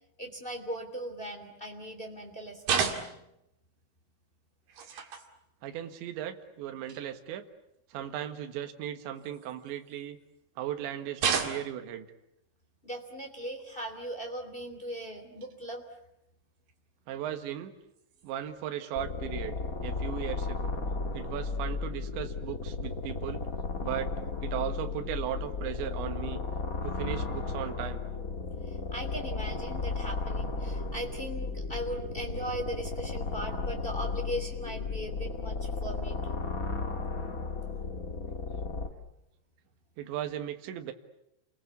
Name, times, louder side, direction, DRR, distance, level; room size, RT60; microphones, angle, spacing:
voice 1, 0.2-2.8 12.8-15.8 28.6-36.4, equal, 15° left, 4 dB, 1.9 m, -38 dB
sound 1, 2.6-3.4 4.7-5.3 6.3-6.4 6.9-7.0 9.2-10.0 11.2-11.9 13.6-13.8 15.4-15.5 16.7-16.8 18.0-18.3, right 6 dB, 50° right, 3.5 m, -32 dB
voice 2, 5.6-7.5 7.9-10.2 10.6-12.1 17.1-17.7 18.2-19.6 19.8-20.8 21.1-23.5 23.8-24.1 24.4-26.4 26.8-28.0 40.0-40.9, right 11 dB, 70° right, 7 dB, 3.8 m, -37 dB
sound 2, 19.0-38.9, left 4 dB, 70° left, 0.8 m, -34 dB
29.5 x 23.0 x 8.4 m, 0.83 s
omnidirectional pair, 5.6 m